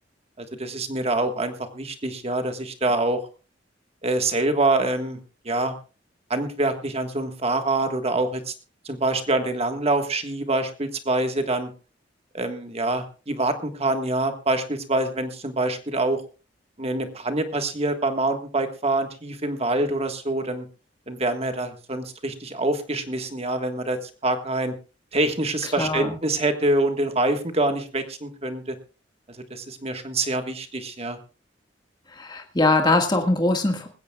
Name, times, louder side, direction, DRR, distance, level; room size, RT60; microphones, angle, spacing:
voice 1, 0.4-3.3 4.0-5.2 5.4-5.8 6.3-8.5 8.8-11.7 12.3-16.2 16.8-20.7 21.1-24.8 25.1-28.8 29.3-31.2, right 2 dB, 35° right, 7 dB, 1.5 m, -25 dB
voice 2, 25.8-26.2 32.2-33.9, left 2 dB, 25° left, 3 dB, 1.7 m, -22 dB
20.0 x 16.0 x 2.3 m, 0.34 s
head